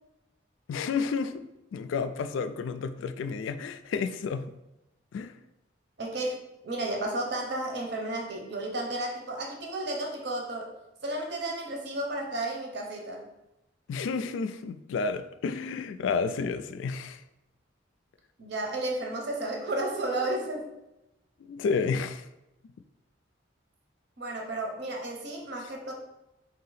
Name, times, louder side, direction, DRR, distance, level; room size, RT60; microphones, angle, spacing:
voice 1, 0.7-1.4 1.7-4.5 5.1-5.3 13.9-17.2 21.5-22.3, left 5 dB, 80° left, 11 dB, 0.3 m, -31 dB
voice 2, 6.0-10.7 11.0-13.3 18.4-20.7 24.2-25.9, right 2 dB, 60° right, 0 dB, 0.8 m, -33 dB
4.6 x 2.8 x 4.0 m, 0.92 s
head